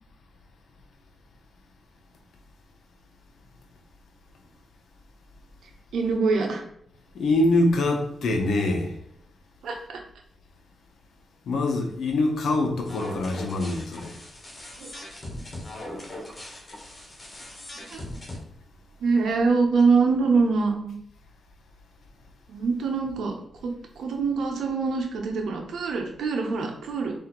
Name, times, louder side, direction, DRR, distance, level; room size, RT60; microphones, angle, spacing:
voice 1, 5.9-6.6 9.6-10.0 14.8-14.9 17.8-18.0 19.0-21.0 22.5-23.3 23.6-27.1, right 4 dB, 85° right, 0.9 m, -24 dB
voice 2, 7.1-8.9 11.5-14.2, left 2 dB, 80° left, 0.9 m, -24 dB
sound 1, 12.8-18.4, left 1 dB, 30° left, 1.4 m, -40 dB
4.4 x 2.8 x 3.9 m
cardioid pair, 80°, 0 cm